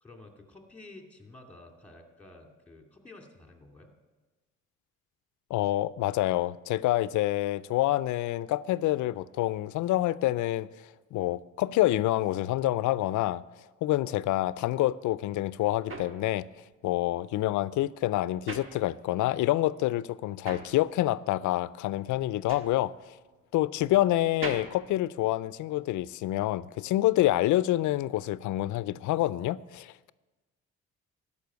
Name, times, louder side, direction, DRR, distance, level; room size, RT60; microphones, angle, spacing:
voice 1, 0.0-3.9, left 2 dB, 5° left, 2.3 m, -51 dB
voice 2, 5.5-13.4 13.8-16.5 16.8-23.2 23.5-30.1, left 15 dB, 75° left, 0.5 m, -27 dB
sound 1, 15.1-19.4 19.7-25.9, right 3 dB, 45° right, 1.6 m, -44 dB
13.0 x 5.5 x 9.4 m
cardioid pair, 90°, 30 cm